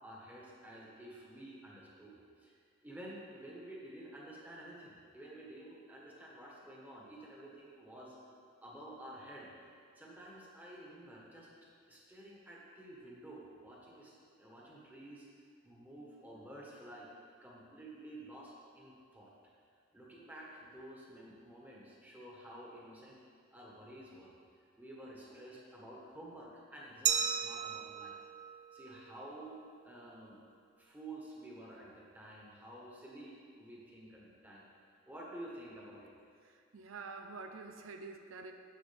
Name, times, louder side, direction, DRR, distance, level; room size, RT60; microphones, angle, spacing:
voice 1, 0.0-8.2 8.6-9.5 9.9-11.5 11.9-15.3 15.6-17.1 17.4-19.3 19.9-23.2 23.5-28.2 28.7-30.4 30.8-36.1, right 1 dB, 10° right, -5 dB, 1.5 m, -51 dB
Glass, 27.1-29.8, right 7 dB, 35° right, 0.4 m, -36 dB
voice 2, 36.7-38.5, right 4 dB, 85° right, 5 dB, 0.6 m, -47 dB
10.0 x 7.5 x 3.6 m, 2.2 s
head